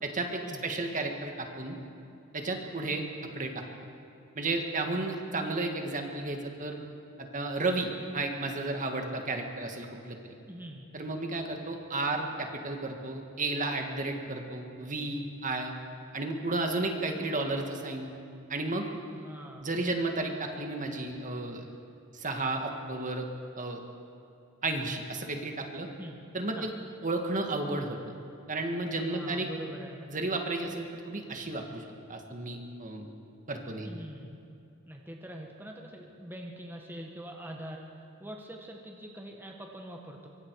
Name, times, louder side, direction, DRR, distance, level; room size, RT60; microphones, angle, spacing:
voice 1, 0.0-1.8 2.3-3.0 3.3-3.6 4.4-6.8 7.2-10.3 10.9-15.7 16.1-18.1 18.5-18.9 19.6-21.7 22.1-23.3 23.6-23.8 24.6-25.9 26.3-26.7 27.0-28.0 28.5-29.5 30.1-33.1 33.5-34.0, right 2 dB, 35° right, 3 dB, 1.9 m, -33 dB
voice 2, 10.5-10.9 19.1-19.7 26.0-26.2 26.6-26.7 28.9-30.1 33.8-34.3 34.9-40.3, equal, 10° right, 1 dB, 1.7 m, -44 dB
24.5 x 23.5 x 4.9 m, 2.6 s
head